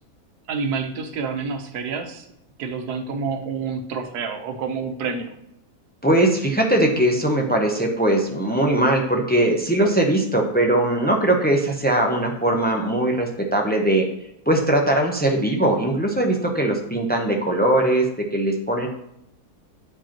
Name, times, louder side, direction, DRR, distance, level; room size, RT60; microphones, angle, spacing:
voice 1, 0.5-2.3 2.6-5.3, right 5 dB, 85° right, 6 dB, 1.4 m, -28 dB
voice 2, 6.0-14.0 14.5-18.0 18.3-18.9, right 1 dB, 10° left, 1 dB, 0.4 m, -20 dB
8.6 x 4.9 x 2.9 m, 0.79 s
omnidirectional pair, 1.6 m